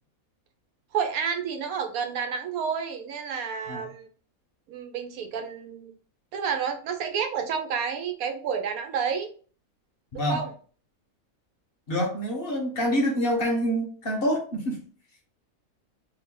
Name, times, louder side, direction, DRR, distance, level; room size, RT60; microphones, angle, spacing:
voice 1, 0.9-4.1 4.7-5.9 6.3-9.3 10.1-10.5, right 6 dB, 80° right, 6 dB, 1.1 m, -30 dB
voice 2, 10.1-10.4 11.9-14.8, equal, 50° left, 1 dB, 0.9 m, -26 dB
2.8 x 2.6 x 3.7 m, 0.42 s
omnidirectional pair, 1.5 m